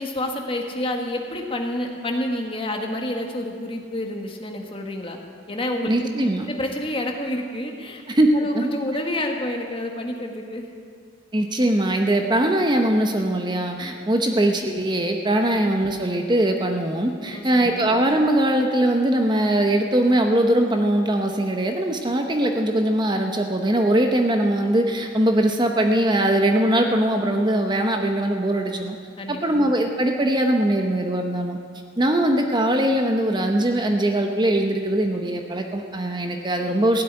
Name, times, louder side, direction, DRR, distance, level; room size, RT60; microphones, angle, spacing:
voice 1, 0.0-5.2 5.5-6.1 6.5-8.0 8.3-10.8 14.3-14.5 17.3-17.8 29.2-29.4, left 1 dB, 25° left, 2 dB, 1.5 m, -29 dB
voice 2, 5.9-6.5 8.1-8.3 8.5-8.7 11.3-29.0 29.3-31.6 32.0-37.0, right 1 dB, 20° right, 4 dB, 0.8 m, -21 dB
16.0 x 8.3 x 9.9 m, 2.3 s
head